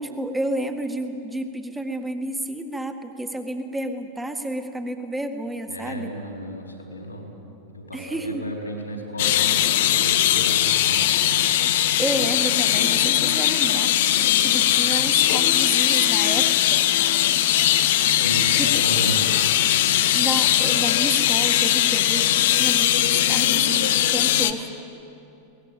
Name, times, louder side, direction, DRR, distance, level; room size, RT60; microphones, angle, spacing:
voice 1, 0.0-6.1 7.9-8.4 12.0-16.8 18.5-19.0 19.9-24.7, right 1 dB, 5° right, 6 dB, 1.8 m, -31 dB
voice 2, 5.7-7.4 7.7-11.0 18.2-19.2, equal, 80° left, 1 dB, 4.2 m, -33 dB
sound 1, 9.2-24.5, left 12 dB, 55° left, 1.0 m, -20 dB
22.0 x 19.5 x 8.5 m, 2.9 s
figure-of-eight pair, 90°, 0 cm